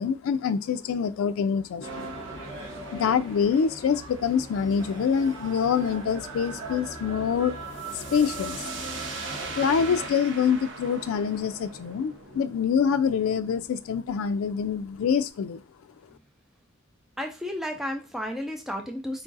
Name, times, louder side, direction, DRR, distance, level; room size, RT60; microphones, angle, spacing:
voice 1, 0.0-2.1 2.9-7.6 7.9-8.6 9.5-15.6, left 7 dB, 85° left, 11 dB, 0.3 m, -25 dB
sound 1, 1.8-10.1, right 2 dB, 75° right, 1.2 m, -38 dB
sound 2, 7.7-15.3, right 4 dB, 60° right, 0.7 m, -42 dB
voice 2, 17.2-19.2, left 1 dB, ahead, 3 dB, 0.4 m, -32 dB
4.6 x 2.4 x 3.8 m, 0.28 s
head